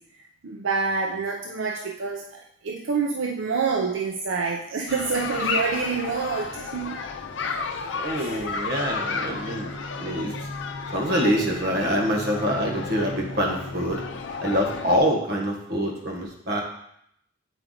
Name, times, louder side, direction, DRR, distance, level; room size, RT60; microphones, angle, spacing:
voice 1, 0.4-7.0 8.2-8.6 10.8-10.9, right 4 dB, 85° right, 0 dB, 0.6 m, -27 dB
sound 1, 4.9-15.0, left 4 dB, 65° left, 0.6 m, -32 dB
voice 2, 7.9-9.7 10.0-10.3 10.9-14.0 14.4-16.6, equal, 55° right, 0 dB, 1.4 m, -25 dB
7.7 x 4.6 x 3.9 m, 0.73 s
head